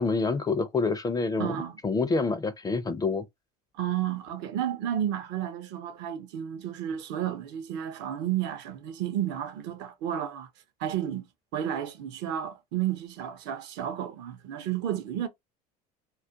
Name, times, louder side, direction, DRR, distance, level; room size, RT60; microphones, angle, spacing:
voice 1, 0.0-1.6 1.8-3.2, left 4 dB, 20° left, 0.4 m, -27 dB
voice 2, 1.4-1.8 3.8-10.5 10.8-11.3 11.5-15.3, right 10 dB, 60° right, 0.6 m, -32 dB
2.3 x 2.1 x 2.7 m
hypercardioid pair, 80°, 21 cm